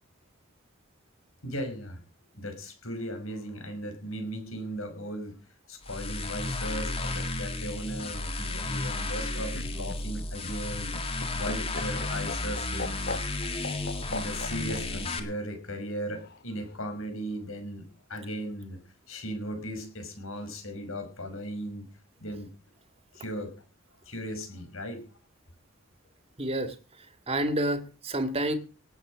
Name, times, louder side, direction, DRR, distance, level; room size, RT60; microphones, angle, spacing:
voice 1, 1.4-2.0 2.3-5.3 5.7-10.9 11.3-13.2 14.1-18.8 19.1-21.8 22.2-22.5 23.1-23.5 24.1-25.0, equal, 80° left, 6 dB, 5.6 m, -37 dB
sound 1, 5.8-15.2, left 2 dB, 30° left, 2.2 m, -33 dB
Laughter, 9.2-14.8 16.1-16.8, left 3 dB, 50° left, 1.4 m, -38 dB
voice 2, 26.4-28.6, right 1 dB, 30° right, 9 dB, 1.9 m, -30 dB
18.5 x 8.4 x 6.2 m, 0.36 s
head